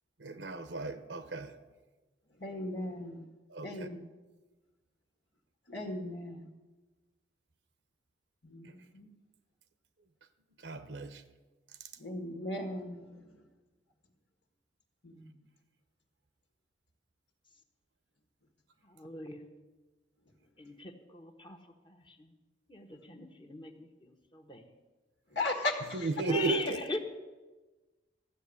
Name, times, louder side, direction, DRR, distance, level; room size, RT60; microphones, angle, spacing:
voice 1, 0.2-1.5 3.5-3.9 10.6-11.2 25.9-26.8, right 3 dB, 80° right, 10 dB, 1.0 m, -34 dB
voice 2, 2.4-3.2 3.6-4.0 5.7-6.5 8.4-9.1 12.0-13.0 15.0-15.3 25.3-26.1, left 2 dB, 70° left, 3 dB, 1.8 m, -37 dB
voice 3, 18.8-19.4 20.6-21.6 21.8-22.3 22.7-24.7 26.2-27.0, left 3 dB, 30° left, 3 dB, 1.2 m, -41 dB
14.5 x 6.7 x 9.8 m, 1.2 s
head